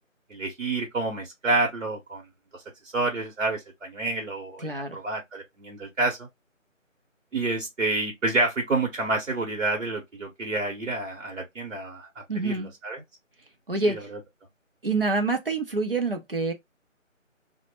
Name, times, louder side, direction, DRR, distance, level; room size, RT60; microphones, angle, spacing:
voice 1, 0.3-2.2 2.9-6.3 7.3-12.1 12.4-12.5 12.8-13.0 13.9-14.0, right 2 dB, 65° right, 0.9 m, -28 dB
voice 2, 4.6-5.0 12.3-12.7 13.7-14.1 14.8-16.5, right 3 dB, 45° right, 0.5 m, -26 dB
2.1 x 2.0 x 3.1 m
figure-of-eight pair, 160°, 40 cm